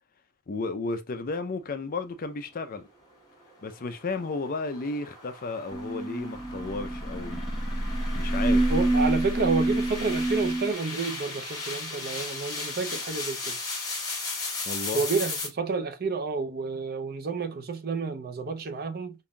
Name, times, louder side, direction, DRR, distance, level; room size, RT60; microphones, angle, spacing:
voice 1, 0.5-2.9 3.6-7.4 8.1-8.7 14.7-15.0, left 3 dB, 40° left, 0.5 m, -33 dB
sound 1, 3.4-15.5, left 3 dB, 20° left, 1.6 m, -37 dB
sound 2, 5.7-10.7, right 1 dB, ahead, 0.8 m, -27 dB
voice 2, 8.7-13.6 14.9-19.1, right 4 dB, 45° right, 0.5 m, -30 dB
5.4 x 2.6 x 2.2 m
head